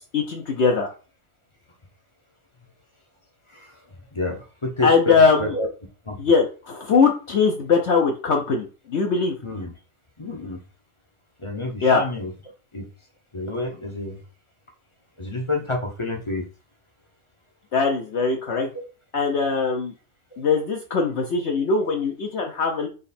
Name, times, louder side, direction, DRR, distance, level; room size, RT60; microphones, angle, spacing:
voice 1, 0.1-0.9 4.8-5.5 6.2-9.3 11.8-12.0 17.7-18.7 19.1-19.9 20.4-22.9, left 5 dB, 60° left, 2 dB, 0.9 m, -21 dB
voice 2, 3.5-3.8 4.1-5.7 6.1-6.2 9.4-9.7 10.2-10.6 11.4-12.3 12.7-12.9 13.3-14.2 15.2-16.4 18.7-18.8, left 2 dB, 25° left, 2 dB, 0.7 m, -29 dB
4.0 x 3.1 x 4.2 m, 0.34 s
omnidirectional pair, 1.5 m